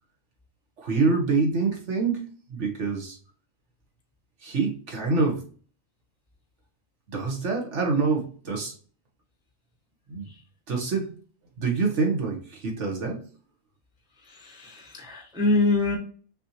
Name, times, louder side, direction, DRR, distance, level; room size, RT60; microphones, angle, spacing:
voice 1, 0.8-3.2 4.4-5.5 7.1-8.7 10.1-10.3 10.7-11.1 11.6-13.2, right 4 dB, 60° right, 0 dB, 1.4 m, -26 dB
voice 2, 14.3-16.0, left 2 dB, 5° right, 1 dB, 0.7 m, -25 dB
6.0 x 2.8 x 2.8 m, 0.42 s
omnidirectional pair, 1.4 m